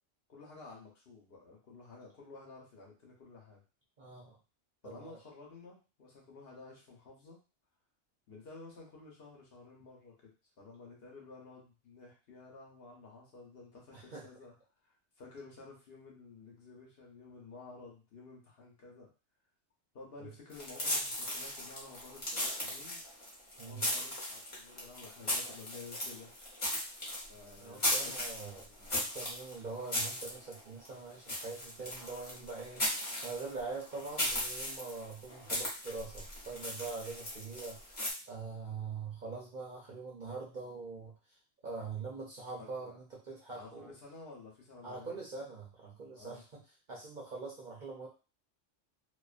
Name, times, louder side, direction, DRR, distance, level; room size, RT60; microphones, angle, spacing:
voice 1, 0.3-3.6 4.8-7.4 8.3-14.5 14.8-19.1 19.9-23.0 23.6-26.3 27.3-28.3 28.7-29.0 42.6-43.0 43.5-45.2 46.1-46.4, left 3 dB, 55° left, -2 dB, 0.9 m, -52 dB
voice 2, 4.0-4.4 4.8-5.2 13.9-14.2 23.6-23.9 27.6-32.8 33.2-37.8 38.3-41.1 41.6-43.9 44.8-46.6 46.9-48.1, right 4 dB, 50° right, -3 dB, 0.6 m, -43 dB
sound 1, 20.5-38.1, left 1 dB, 30° left, 0.8 m, -37 dB
2.4 x 2.3 x 2.4 m, 0.33 s
omnidirectional pair, 1.2 m